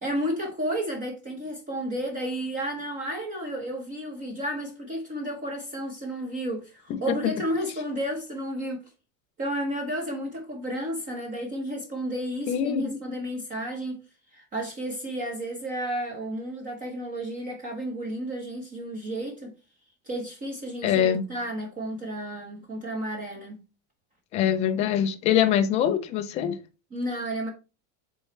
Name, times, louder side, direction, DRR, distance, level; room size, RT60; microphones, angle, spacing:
voice 1, 0.0-8.8 9.4-14.0 14.3-19.5 20.0-23.6 26.9-27.5, equal, 20° right, 1.0 m, -32 dB
voice 2, 12.5-12.9 20.8-21.2 24.3-26.6, left 9 dB, 20° left, 0.3 m, -23 dB
8.0 x 4.2 x 3.1 m
cardioid pair, 175°, 41 cm